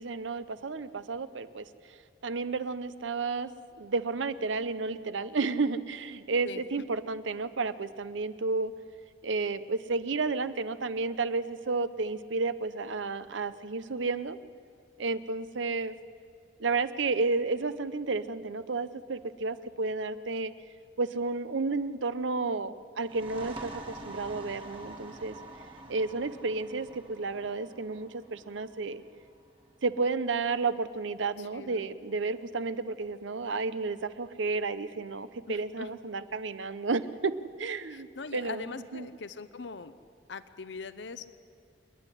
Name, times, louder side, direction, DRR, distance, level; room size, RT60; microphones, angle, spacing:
voice 1, 0.0-2.0 2.2-3.5 3.8-8.7 9.2-14.4 15.0-16.0 16.6-20.5 21.0-25.4 25.9-29.0 29.8-39.1, right 3 dB, 80° right, 13 dB, 0.8 m, -32 dB
sound 1, 23.0-30.4, right 2 dB, 30° right, 1.8 m, -46 dB
voice 2, 31.4-31.9 35.5-35.9 37.9-39.9 40.3-41.3, left 4 dB, 70° left, 12 dB, 0.7 m, -41 dB
28.0 x 9.9 x 9.9 m, 2.4 s
head